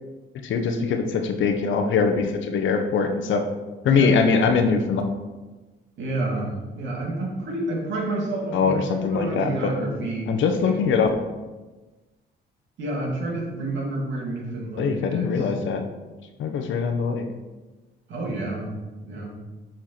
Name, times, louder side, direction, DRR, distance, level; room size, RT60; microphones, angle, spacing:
voice 1, 0.4-3.4 3.8-5.1 8.5-9.7 10.3-11.1 14.8-15.8 16.4-17.2, left 5 dB, 75° left, 5 dB, 0.9 m, -22 dB
voice 2, 6.0-10.3 10.6-10.8 12.8-15.5 18.1-18.7 19.0-19.4, right 2 dB, 70° right, -2 dB, 2.3 m, -29 dB
7.2 x 4.5 x 4.4 m, 1.2 s
cardioid pair, 90°, 20 cm